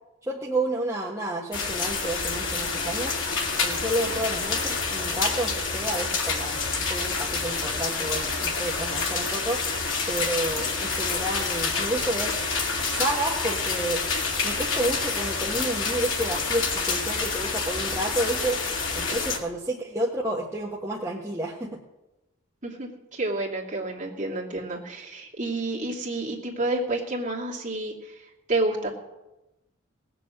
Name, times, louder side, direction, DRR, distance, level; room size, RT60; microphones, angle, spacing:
voice 1, 0.2-3.2 3.6-6.6 6.9-9.6 10.1-12.4 12.8-14.0 14.4-18.6 18.9-21.8, right 1 dB, 15° right, -4 dB, 1.3 m, -30 dB
sound 1, 1.5-19.4, left 4 dB, 75° left, 2.5 m, -28 dB
voice 2, 22.6-28.2 28.5-28.9, right 2 dB, 40° right, -2 dB, 2.6 m, -29 dB
19.0 x 7.0 x 7.6 m, 0.97 s
head